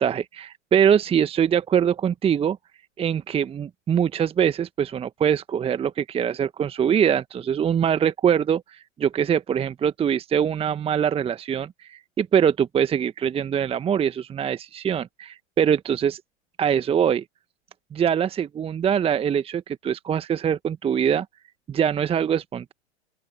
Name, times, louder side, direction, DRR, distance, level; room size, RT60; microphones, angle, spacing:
voice 1, 0.0-2.6 3.0-16.2 16.6-17.2 17.9-21.3 21.7-22.7, right 8 dB, 15° right, 1.3 m, -23 dB
open air
figure-of-eight pair, 100°, 35 cm